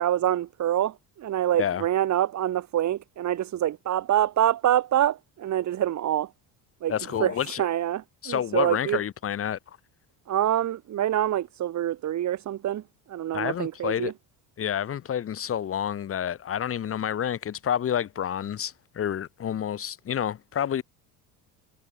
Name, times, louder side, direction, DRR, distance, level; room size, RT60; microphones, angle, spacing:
voice 1, 0.0-6.3 6.8-7.3 7.6-9.0 10.3-12.8 13.1-14.1, right 11 dB, 40° right, 1.1 m, -26 dB
voice 2, 6.9-7.6 8.2-9.6 13.3-14.1 14.6-20.8, left 9 dB, 30° left, 0.9 m, -29 dB
supercardioid pair, 100°, 42 cm